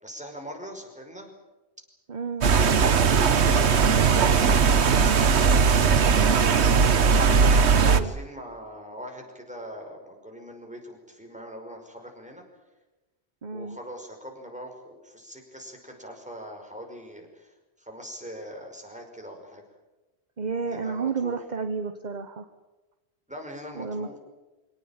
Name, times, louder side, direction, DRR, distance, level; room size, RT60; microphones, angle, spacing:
voice 1, 0.0-1.3 7.6-12.4 13.5-19.6 20.6-21.4 23.3-24.2, equal, 5° right, 2 dB, 5.5 m, -42 dB
voice 2, 2.1-2.5 7.8-8.1 13.4-13.8 20.4-22.4 23.7-24.2, right 5 dB, 45° right, 8 dB, 1.3 m, -31 dB
sound 1, 2.4-8.0, right 5 dB, 85° right, 1.4 m, -19 dB
24.5 x 18.5 x 9.1 m, 1.1 s
omnidirectional pair, 1.1 m